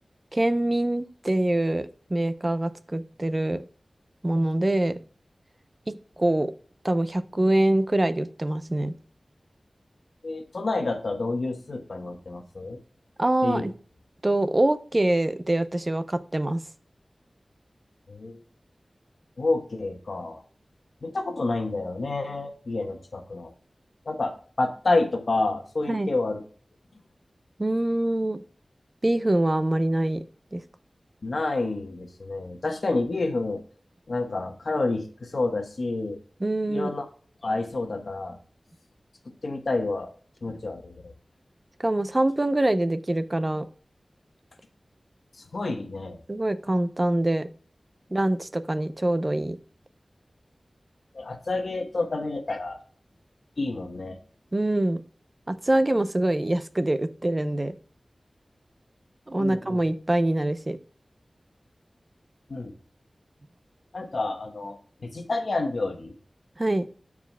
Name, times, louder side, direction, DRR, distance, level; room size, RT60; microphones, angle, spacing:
voice 1, 0.3-3.6 4.2-5.0 5.9-6.5 6.8-8.9 13.2-13.7 14.2-16.6 25.9-26.1 27.6-28.4 29.0-30.3 30.5-30.6 36.4-36.9 41.8-43.7 46.3-47.5 48.1-49.6 54.5-55.0 55.5-57.7 59.3-60.8 66.6-66.9, right 1 dB, 35° right, 12 dB, 0.6 m, -24 dB
voice 2, 10.2-12.8 13.4-13.7 18.1-18.4 19.4-20.4 21.0-23.5 24.1-26.4 31.2-33.6 34.1-36.2 36.7-37.1 37.4-38.4 39.4-40.1 40.4-41.1 45.5-46.2 51.1-52.8 53.6-54.2 59.4-59.8 62.5-62.7 63.9-66.1, left 2 dB, 75° left, 6 dB, 1.1 m, -29 dB
13.0 x 4.8 x 2.2 m, 0.43 s
wide cardioid pair, 55°, 0 cm